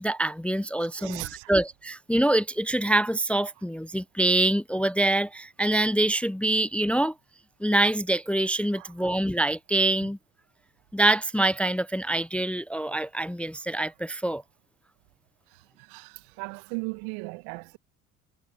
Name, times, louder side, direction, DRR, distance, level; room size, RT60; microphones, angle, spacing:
voice 1, 0.0-7.1 7.6-10.2 10.9-14.4, right 1 dB, 5° left, 0.6 m, -25 dB
voice 2, 0.8-1.5 8.7-9.1 15.5-17.8, right 30 dB, 70° right, 1.6 m, -38 dB
hypercardioid pair, 60°, 44 cm